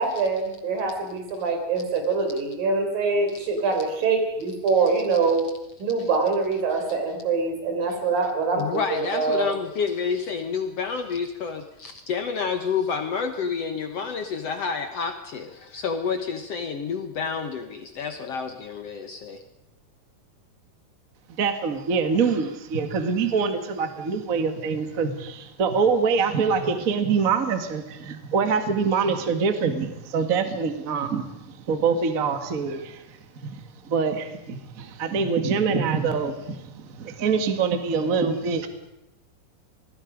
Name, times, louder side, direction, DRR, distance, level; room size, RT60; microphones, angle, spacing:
voice 1, 0.0-5.4 5.8-9.5, right 4 dB, 75° right, 4 dB, 5.5 m, -24 dB
voice 2, 8.5-19.4, left 6 dB, 60° left, 7 dB, 1.8 m, -29 dB
voice 3, 21.4-33.2 33.4-38.7, right 5 dB, 35° right, 7 dB, 1.5 m, -25 dB
26.5 x 20.5 x 5.1 m, 0.90 s
omnidirectional pair, 4.0 m